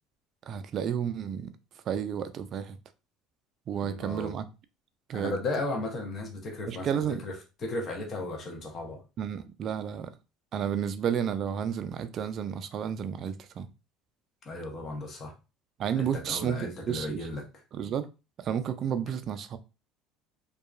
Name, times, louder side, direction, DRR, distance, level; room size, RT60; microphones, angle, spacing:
voice 1, 0.5-1.5 1.9-2.8 3.7-4.5 5.1-5.3 6.7-7.2 9.2-10.1 10.5-13.7 15.8-17.2 17.7-18.1 18.4-19.6, right 8 dB, 50° right, 0.4 m, -31 dB
voice 2, 3.8-4.4 5.1-9.0 14.4-15.3 15.9-17.5, left 2 dB, 40° left, 0.8 m, -35 dB
2.7 x 2.3 x 2.4 m
supercardioid pair, 105°, 0 cm